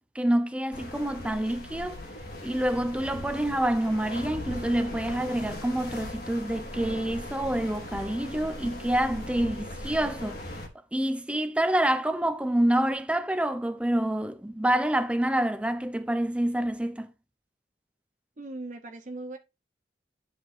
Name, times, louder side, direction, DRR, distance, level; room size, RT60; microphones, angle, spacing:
voice 1, 0.1-2.0 2.4-10.6 10.9-17.1, right 1 dB, 5° right, 0.7 m, -27 dB
sound 1, 0.7-10.7, left 1 dB, 60° left, 2.0 m, -39 dB
voice 2, 18.4-19.4, right 2 dB, 45° right, 0.8 m, -39 dB
10.5 x 6.7 x 2.6 m
head